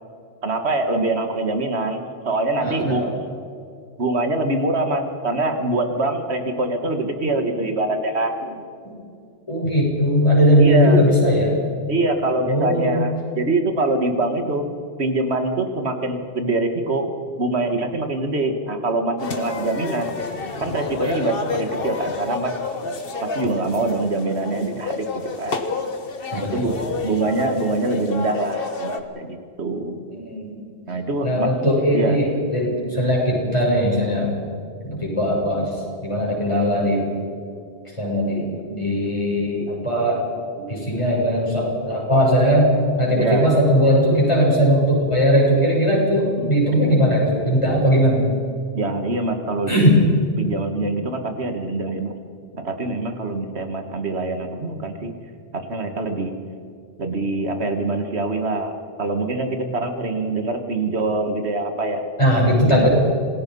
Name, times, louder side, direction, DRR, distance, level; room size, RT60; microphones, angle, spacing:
voice 1, 0.4-3.1 4.0-8.6 10.6-11.0 11.9-14.7 15.0-17.1 17.4-20.1 20.6-22.5 23.2-25.6 26.3-30.0 30.9-31.5 31.9-32.2 43.2-43.6 46.4-46.5 48.7-50.1 50.4-52.1 52.5-55.1 55.5-56.3 57.0-62.1 62.7-62.9, right 2 dB, 85° right, 6 dB, 2.1 m, -24 dB
voice 2, 2.6-3.1 9.5-11.6 12.4-13.0 26.3-27.1 30.1-30.6 31.2-34.3 34.8-37.0 37.8-40.2 40.6-42.7 43.0-48.3 49.7-50.0 62.2-62.9, equal, 30° left, -4 dB, 7.8 m, -19 dB
sound 1, 19.2-29.0, left 4 dB, 60° left, 1.6 m, -29 dB
27.5 x 20.0 x 5.5 m, 2.4 s
omnidirectional pair, 1.1 m